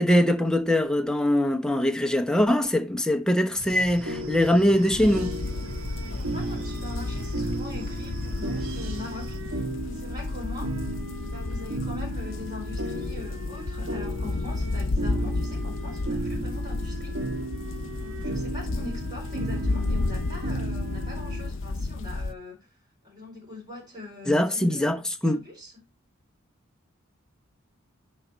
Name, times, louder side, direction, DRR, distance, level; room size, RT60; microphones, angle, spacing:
voice 1, 0.0-5.3 24.3-25.4, left 1 dB, 5° left, 0.9 m, -22 dB
sound 1, 3.6-9.4, right 2 dB, 75° right, 1.5 m, -42 dB
sound 2, 4.1-21.5, right 1 dB, 60° right, 1.3 m, -35 dB
sound 3, 4.9-22.3, left 2 dB, 60° left, 0.6 m, -32 dB
voice 2, 6.1-10.8 11.2-17.2 17.9-22.7 23.0-25.7, left 3 dB, 20° right, 4.9 m, -42 dB
10.5 x 4.0 x 4.4 m
head